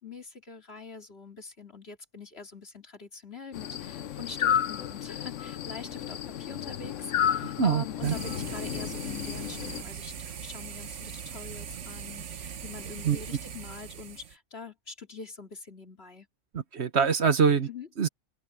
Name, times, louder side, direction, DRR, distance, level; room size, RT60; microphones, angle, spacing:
voice 1, 0.0-16.3 17.7-17.9, left 4 dB, 55° left, 2.9 m, -44 dB
sound 1, 3.5-9.8, left 9 dB, 90° left, 1.1 m, -32 dB
voice 2, 7.6-8.1 13.0-13.2 16.7-17.7 18.0-18.1, right 6 dB, 60° right, 1.4 m, -23 dB
sound 2, 8.0-14.3, right 7 dB, 75° right, 1.3 m, -41 dB
omnidirectional pair, 1.2 m